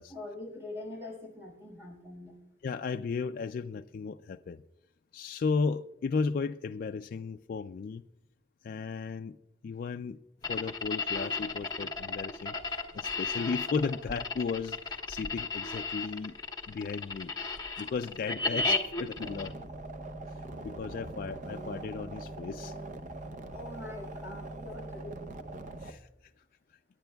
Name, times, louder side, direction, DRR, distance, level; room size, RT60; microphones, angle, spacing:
voice 1, 0.1-2.3 23.5-25.4, left 2 dB, 15° right, 5.6 m, -43 dB
voice 2, 2.6-4.6 5.1-8.0 8.6-9.4 9.6-10.2 10.5-16.3 16.7-17.3 17.8-19.5 20.6-22.7 25.8-26.1, left 5 dB, 50° left, 0.3 m, -35 dB
sound 1, 10.4-19.5, left 3 dB, 25° left, 1.3 m, -34 dB
sound 2, 19.2-25.9, right 2 dB, 45° right, 0.7 m, -42 dB
27.5 x 10.5 x 2.3 m
head